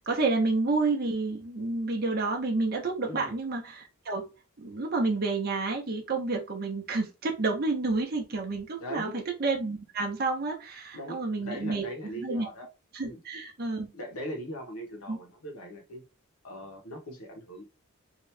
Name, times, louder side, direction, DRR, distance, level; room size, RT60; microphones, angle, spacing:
voice 1, 0.1-4.3 4.6-12.5 12.9-13.9 15.1-15.2, right 3 dB, 45° right, 0.7 m, -30 dB
voice 2, 3.0-3.3 8.8-9.2 10.9-12.7 13.0-13.2 13.9-16.0 16.4-17.7, equal, 80° left, 1.1 m, -40 dB
2.9 x 2.7 x 3.3 m
head